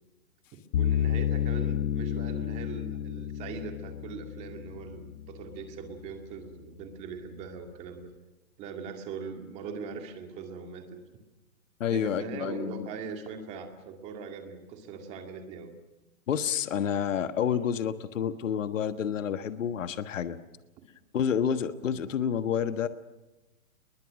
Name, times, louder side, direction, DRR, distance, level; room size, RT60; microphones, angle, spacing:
sound 1, 0.7-5.9, left 10 dB, 80° left, 0.9 m, -31 dB
voice 1, 0.8-8.1 8.6-11.0 11.9-15.7, right 5 dB, 15° right, 5 dB, 2.2 m, -41 dB
voice 2, 11.8-12.9 16.3-20.4 21.1-22.9, left 8 dB, 60° left, 11 dB, 1.5 m, -29 dB
30.0 x 21.0 x 6.4 m, 1.0 s
hypercardioid pair, 170°, 44 cm